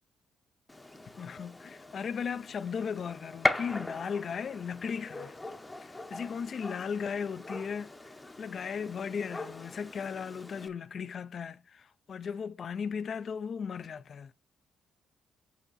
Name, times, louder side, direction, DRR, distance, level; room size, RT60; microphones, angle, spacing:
Gunshot gunfire, 0.7-10.7, left 2 dB, 15° left, 0.7 m, -39 dB
voice 1, 1.1-5.4 5.8-14.3, left 6 dB, 50° left, 0.4 m, -36 dB
5.6 x 5.0 x 4.0 m
cardioid pair, 90°, 0 cm